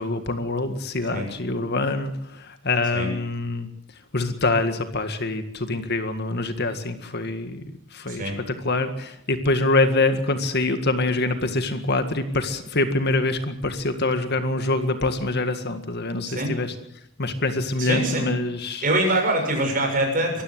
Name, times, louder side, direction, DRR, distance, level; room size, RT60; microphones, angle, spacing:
voice 1, 0.0-3.7 4.1-16.7 17.2-18.8, left 2 dB, 50° left, 8 dB, 1.8 m, -25 dB
voice 2, 17.8-18.3 18.8-20.4, right 1 dB, 40° right, 3 dB, 6.9 m, -24 dB
24.0 x 15.0 x 7.9 m, 0.76 s
head